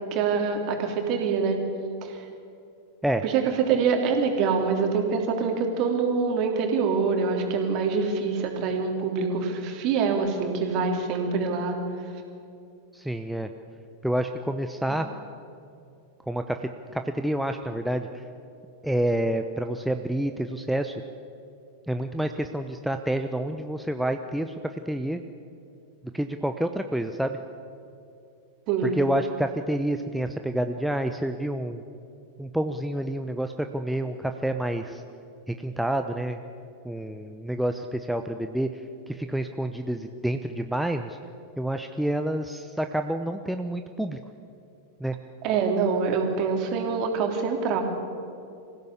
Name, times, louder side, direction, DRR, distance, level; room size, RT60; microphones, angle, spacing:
voice 1, 0.1-1.6 2.0-2.2 3.2-11.8 14.9-15.0 28.7-29.0 45.4-47.8, right 5 dB, 40° right, 3 dB, 3.5 m, -25 dB
voice 2, 12.9-13.5 14.0-15.1 16.3-18.2 18.8-20.9 21.9-25.2 26.1-27.4 28.8-31.8 32.4-35.0 35.5-36.4 36.8-38.8 39.1-41.2 41.6-44.2 45.0-45.1, right 1 dB, ahead, 6 dB, 0.9 m, -28 dB
25.0 x 16.0 x 8.3 m, 2.6 s
figure-of-eight pair, 90°, 0 cm